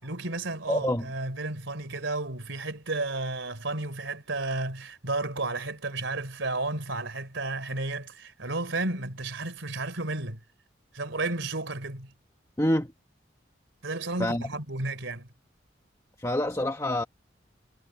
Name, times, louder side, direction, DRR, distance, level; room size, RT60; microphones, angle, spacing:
voice 1, 0.0-10.4 10.9-12.1 13.8-15.3, right 2 dB, 90° right, 3.7 m, -32 dB
voice 2, 0.7-1.1 12.6-12.9 14.2-14.5 16.2-17.0, left 1 dB, 15° left, 1.2 m, -26 dB
head